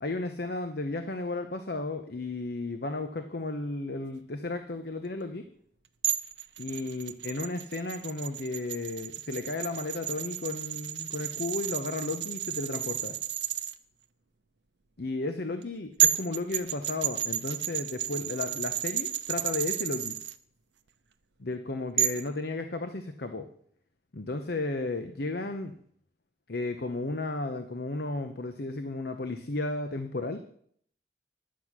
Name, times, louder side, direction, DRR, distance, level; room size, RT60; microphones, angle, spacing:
voice 1, 0.0-5.4 6.6-13.2 15.0-20.2 21.4-23.5 24.1-25.7 26.5-30.4, left 2 dB, 60° left, 8 dB, 0.8 m, -34 dB
sound 1, 6.0-13.7 15.6-15.7 16.0-20.3 22.0-22.3, right 11 dB, 75° right, 0.7 m, -31 dB
11.5 x 8.3 x 6.0 m, 0.62 s
head